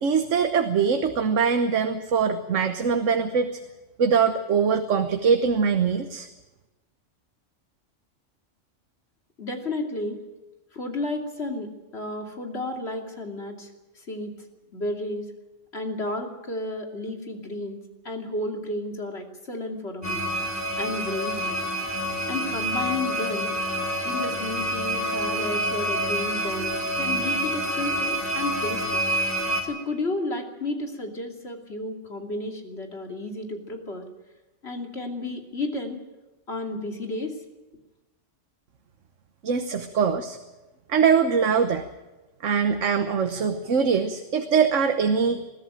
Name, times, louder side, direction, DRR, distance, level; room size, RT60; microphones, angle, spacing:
voice 1, 0.0-3.5 4.0-6.3 39.4-40.4 40.9-41.8 42.4-45.4, right 6 dB, 75° right, 7 dB, 1.5 m, -22 dB
voice 2, 9.4-10.2 10.7-13.7 14.0-14.3 14.7-15.3 15.7-20.3 20.8-21.6 22.3-23.5 24.0-29.0 29.6-34.0 34.6-36.0 36.5-37.3, left 2 dB, 55° left, 3 dB, 3.0 m, -32 dB
sound 1, 20.0-29.6, right 1 dB, 10° left, 3.3 m, -27 dB
21.5 x 14.5 x 9.0 m, 1.1 s
omnidirectional pair, 1.3 m